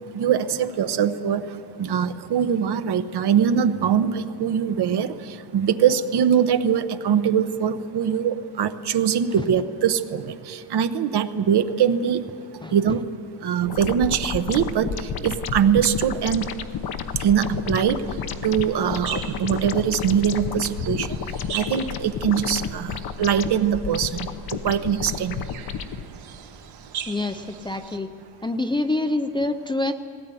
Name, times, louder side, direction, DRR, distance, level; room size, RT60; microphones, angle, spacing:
voice 1, 0.1-1.5 1.8-12.2 12.7-13.0 13.4-16.5 17.2-18.1 18.4-21.1 21.5-25.4, right 8 dB, 55° right, 11 dB, 1.0 m, -22 dB
sound 1, 13.7-26.0, left 7 dB, 50° left, 0.9 m, -31 dB
sound 2, 16.0-28.0, right 8 dB, 90° right, 2.4 m, -41 dB
voice 2, 27.1-28.1 28.4-29.9, left 2 dB, 10° left, 6 dB, 0.4 m, -26 dB
20.0 x 17.5 x 9.2 m, 2.4 s
cardioid pair, 175°, 47 cm